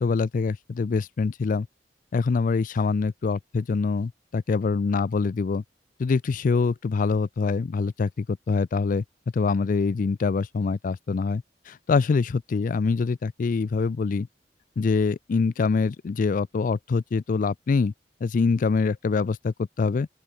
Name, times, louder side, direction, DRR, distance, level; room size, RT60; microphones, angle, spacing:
voice 1, 0.0-1.7 2.1-5.6 6.0-9.0 9.3-14.3 14.8-17.9 18.2-20.1, left 4 dB, 50° left, 0.4 m, -25 dB
open air
head